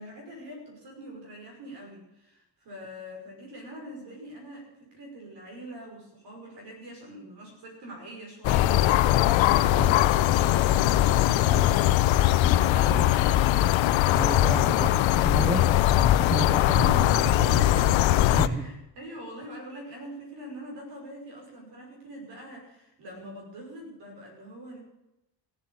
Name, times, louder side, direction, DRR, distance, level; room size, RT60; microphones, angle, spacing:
voice 1, 0.0-9.3 9.5-13.6 14.4-14.8 17.3-17.9 18.4-24.8, equal, 65° right, 0 dB, 5.8 m, -43 dB
sound 1, 8.4-18.5, left 13 dB, 90° left, 0.7 m, -21 dB
voice 2, 14.1-17.9 18.3-18.7, right 3 dB, 10° right, 9 dB, 0.6 m, -32 dB
16.0 x 8.0 x 8.6 m, 0.90 s
cardioid pair, 180°, 45 cm